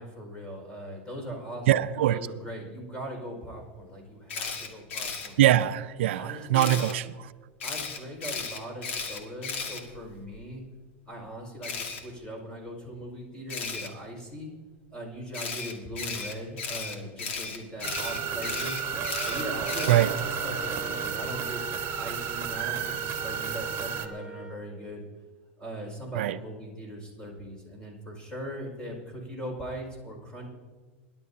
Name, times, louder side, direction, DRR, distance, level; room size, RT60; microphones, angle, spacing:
voice 1, 0.0-5.4 6.2-7.0 7.6-10.6 11.1-14.5 14.9-18.8 19.3-21.6 22.0-25.0 25.6-30.5, equal, 15° left, 1 dB, 5.2 m, -40 dB
voice 2, 1.7-2.2 5.4-7.3 19.9-20.1 26.1-26.4, right 13 dB, 80° right, 13 dB, 0.5 m, -23 dB
Camera, 4.3-5.3 6.5-6.9 7.6-10.4 11.6-12.0 13.5-13.9 15.3-20.3, left 5 dB, 85° left, 2.1 m, -35 dB
sound 1, 17.8-24.1, right 7 dB, 40° right, 1.3 m, -32 dB
Wind instrument woodwind instrument, 19.8-24.7, right 3 dB, 15° right, 1.2 m, -43 dB
23.0 x 11.5 x 2.8 m, 1.4 s
supercardioid pair, 120°, 6 cm